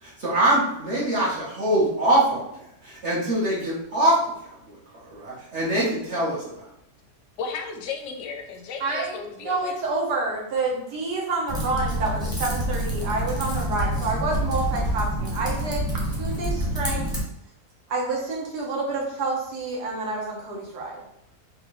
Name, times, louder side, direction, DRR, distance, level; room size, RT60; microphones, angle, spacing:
voice 1, 0.0-4.2 4.5-4.8 5.1-6.6, right 1 dB, 50° right, -6 dB, 1.3 m, -24 dB
voice 2, 7.4-9.8, left 5 dB, 65° left, 3 dB, 0.8 m, -34 dB
voice 3, 8.8-15.9 16.2-17.1 17.9-21.0, right 3 dB, 90° right, -1 dB, 1.6 m, -28 dB
Typing, 11.5-17.2, equal, 5° right, 0.7 m, -27 dB
4.1 x 2.5 x 3.0 m, 0.77 s
omnidirectional pair, 1.7 m